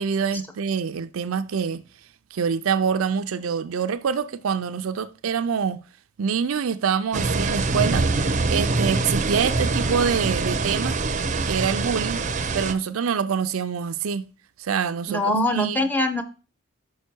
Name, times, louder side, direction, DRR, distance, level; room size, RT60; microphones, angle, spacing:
voice 1, 0.0-1.8 2.3-5.8 6.2-8.1 8.5-11.0 11.4-12.2 12.5-14.3 14.6-15.8, right 6 dB, 85° right, 0.5 m, -25 dB
sound 1, 7.1-12.7, right 3 dB, 35° right, 0.5 m, -24 dB
voice 2, 15.1-16.2, left 1 dB, 10° left, 0.7 m, -22 dB
5.7 x 5.3 x 4.4 m
head